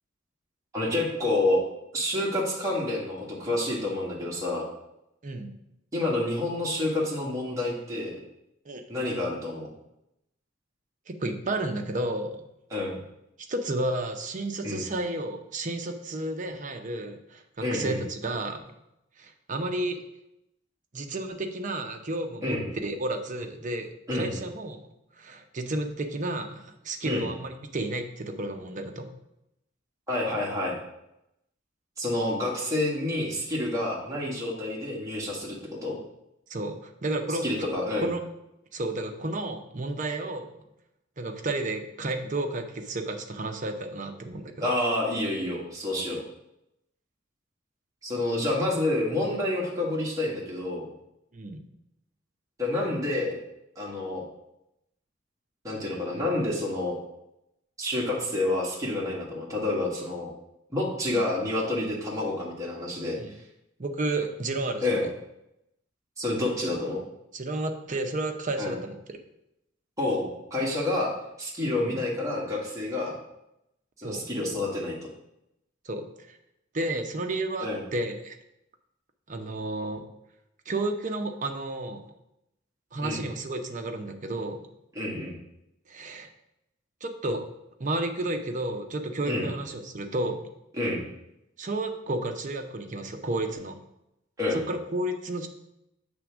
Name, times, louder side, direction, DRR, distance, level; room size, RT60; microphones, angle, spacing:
voice 1, 0.7-1.6 1.9-4.7 5.9-8.2 8.9-9.7 12.7-13.0 14.6-14.8 17.6-18.0 22.4-22.7 24.1-24.3 27.0-27.3 30.1-30.7 32.0-36.0 37.4-38.1 44.6-46.2 48.0-50.9 52.6-53.4 53.7-54.2 55.6-57.0 57.8-60.3 60.7-63.2 64.8-65.1 66.2-67.0 68.6-68.8 70.0-71.1 71.4-73.1 74.0-75.1 77.6-77.8 83.0-83.2 84.9-85.3 89.3-89.5 90.7-91.0 94.4-94.6, left 1 dB, 15° right, -4 dB, 1.5 m, -28 dB
voice 2, 5.2-5.5 8.7-8.8 11.1-12.5 13.4-18.6 19.2-20.0 20.9-22.6 22.8-24.8 25.2-29.1 36.5-37.4 38.0-38.2 38.7-40.5 41.2-44.7 51.3-51.6 61.1-61.2 63.2-63.3 63.8-65.1 67.3-69.2 71.8-72.0 74.0-74.3 75.8-76.4 76.7-78.4 79.3-80.1 80.7-82.0 82.9-84.7 85.9-86.3 87.0-87.5 87.8-90.5 91.6-93.8 94.5-95.5, right 2 dB, 40° right, 5 dB, 0.7 m, -32 dB
7.5 x 3.5 x 6.1 m, 0.84 s
head